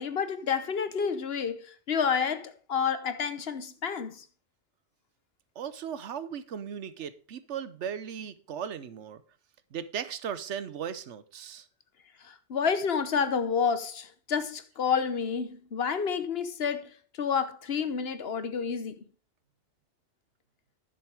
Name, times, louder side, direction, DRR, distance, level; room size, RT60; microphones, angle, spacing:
voice 1, 0.0-4.2 12.2-18.9, left 6 dB, 65° left, 1.2 m, -29 dB
voice 2, 5.6-9.2 9.7-11.6, right 8 dB, 90° right, 1.1 m, -37 dB
11.0 x 7.0 x 4.8 m
omnidirectional pair, 1.2 m